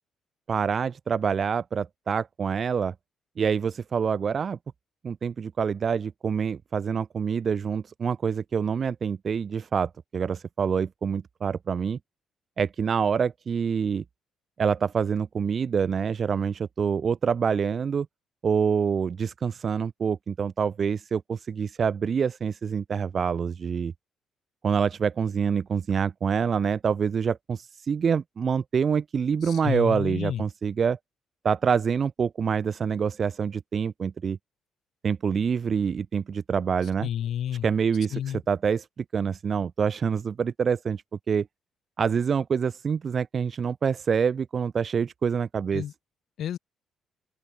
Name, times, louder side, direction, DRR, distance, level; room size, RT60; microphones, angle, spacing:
voice 1, 0.5-2.9 3.4-4.6 5.0-12.0 12.6-14.0 14.6-18.1 18.4-23.9 24.6-31.0 31.4-34.4 35.0-37.1 37.6-41.5 42.0-45.8, right 6 dB, 45° right, 1.9 m, -26 dB
voice 2, 29.4-30.4 37.0-37.7 38.1-38.4 45.7-45.9 46.4-46.6, left 10 dB, 70° left, 4.0 m, -30 dB
open air
cardioid pair, 90°, 0 cm